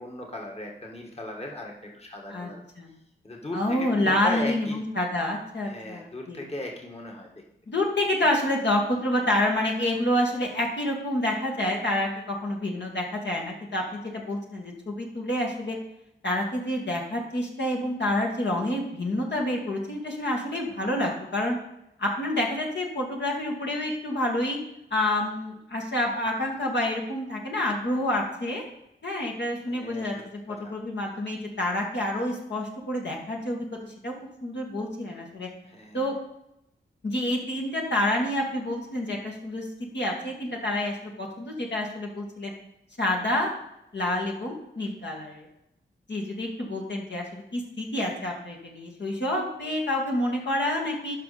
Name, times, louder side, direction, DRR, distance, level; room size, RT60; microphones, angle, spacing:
voice 1, 0.0-2.6 3.2-4.8 5.6-7.3 29.7-30.1 30.5-30.7 35.6-36.1, left 1 dB, 30° left, 0 dB, 1.8 m, -37 dB
voice 2, 3.5-6.4 7.7-15.8 16.2-21.6 22.0-24.6 24.9-28.6 29.0-34.1 34.4-35.5 35.9-36.2 37.0-39.7 39.9-42.5 43.0-43.5 43.9-45.5 46.1-51.1, left 1 dB, 65° left, -2 dB, 2.1 m, -28 dB
12.0 x 5.3 x 4.3 m, 0.84 s
cardioid pair, 40°, 20 cm